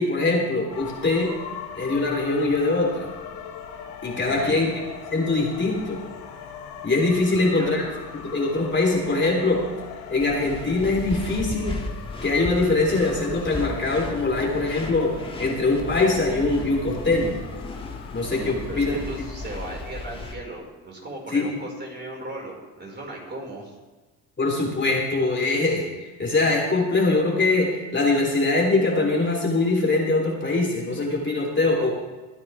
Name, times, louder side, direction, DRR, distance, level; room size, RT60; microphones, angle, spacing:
voice 1, 0.0-1.3 1.8-3.1 4.0-4.7 5.1-6.0 6.8-7.9 8.1-9.6 10.1-11.8 12.2-17.4 18.1-19.0 21.3-21.4 24.4-31.9, left 3 dB, 30° left, -1 dB, 3.7 m, -22 dB
sound 1, 0.7-20.0, left 7 dB, 75° left, 2.3 m, -40 dB
voice 2, 4.2-4.7 7.3-7.7 18.3-23.8, right 2 dB, 25° right, -2 dB, 5.4 m, -36 dB
sound 2, 10.2-20.3, left 2 dB, 15° left, 2.3 m, -36 dB
22.5 x 9.6 x 3.6 m, 1.2 s
supercardioid pair, 75°, 38 cm